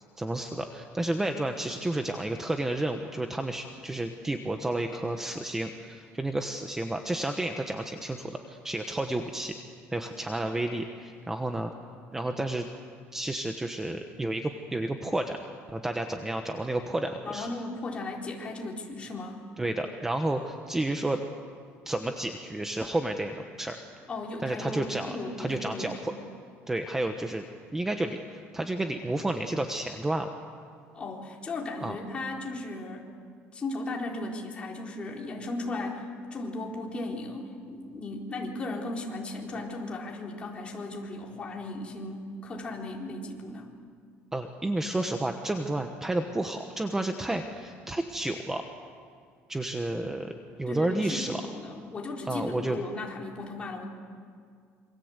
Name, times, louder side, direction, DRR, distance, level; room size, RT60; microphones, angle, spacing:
voice 1, 0.2-9.5 9.9-11.7 12.1-12.7 13.1-15.4 15.7-17.5 19.6-21.2 21.8-23.8 24.4-26.1 26.7-27.4 27.7-28.2 28.5-30.3 31.8-32.0 44.3-48.6 49.5-50.3 50.6-51.4 52.3-52.8, right 1 dB, 10° right, 5 dB, 1.1 m, -31 dB
voice 2, 17.2-19.4 24.1-26.0 30.9-33.1 33.5-36.1 36.3-43.7 50.7-53.9, left 2 dB, 20° left, -1 dB, 4.2 m, -36 dB
27.5 x 26.0 x 8.2 m, 2.1 s
cardioid pair, 160°, 5 cm